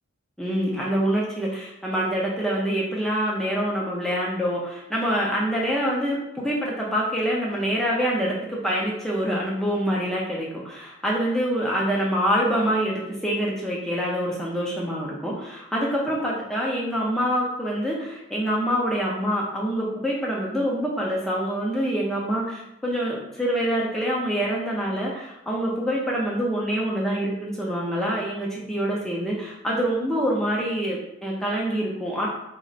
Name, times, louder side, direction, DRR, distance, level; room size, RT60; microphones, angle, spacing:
voice 1, 0.4-32.3, equal, ahead, -5 dB, 0.5 m, -26 dB
2.4 x 2.1 x 3.8 m, 0.87 s
head